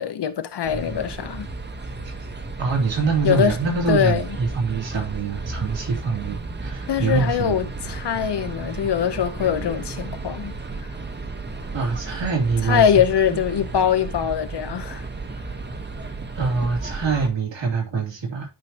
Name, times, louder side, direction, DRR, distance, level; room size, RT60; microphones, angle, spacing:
voice 1, 0.0-1.5 3.2-3.5 3.9-4.3 6.9-10.5 12.6-15.1, left 8 dB, 65° left, 1.0 m, -22 dB
sound 1, 0.6-17.3, right 3 dB, 25° right, 1.0 m, -33 dB
voice 2, 2.6-7.6 11.7-12.9 13.3-13.4 16.3-18.5, right 4 dB, 80° right, 3.3 m, -24 dB
12.0 x 4.9 x 2.8 m
wide cardioid pair, 120°, 44 cm